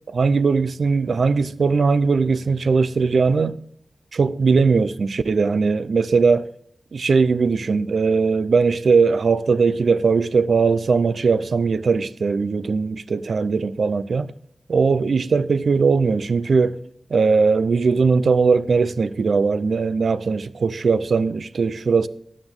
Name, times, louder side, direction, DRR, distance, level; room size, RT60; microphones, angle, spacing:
voice 1, 0.1-3.6 4.1-6.5 6.9-14.3 14.7-16.8 17.1-22.1, right 4 dB, 60° right, 0.5 m, -19 dB
15.0 x 9.9 x 3.6 m
wide cardioid pair, 130°, 0 cm